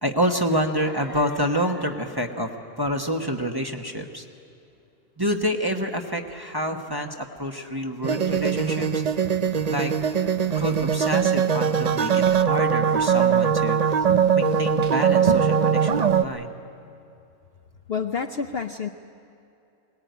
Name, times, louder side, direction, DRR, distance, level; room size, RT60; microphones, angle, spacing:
voice 1, 0.0-2.5 2.8-4.2 5.2-9.0 9.7-9.9 10.5-14.0 14.3-16.6, equal, 15° right, 2 dB, 1.1 m, -27 dB
sound 1, 8.0-16.2, right 7 dB, 55° right, 0.4 m, -21 dB
voice 2, 17.9-18.9, left 6 dB, 50° left, 5 dB, 0.8 m, -28 dB
22.5 x 19.5 x 9.3 m, 2.7 s
omnidirectional pair, 1.5 m